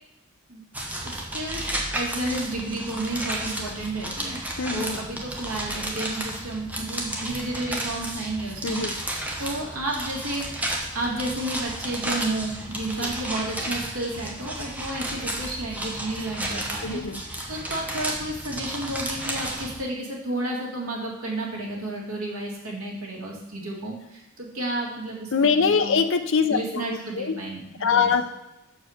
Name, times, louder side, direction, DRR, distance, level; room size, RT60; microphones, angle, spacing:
sound 1, 0.7-19.8, right 1 dB, 5° right, 1.0 m, -32 dB
voice 1, 1.1-4.4 4.7-10.5 10.9-26.0 26.5-28.2, right 2 dB, 85° right, -2 dB, 2.2 m, -32 dB
voice 2, 4.6-5.0 8.6-8.9 13.0-13.1 16.8-17.2 25.3-27.4 27.8-28.2, left 5 dB, 65° left, 8 dB, 0.6 m, -23 dB
6.6 x 4.7 x 6.4 m, 0.91 s
head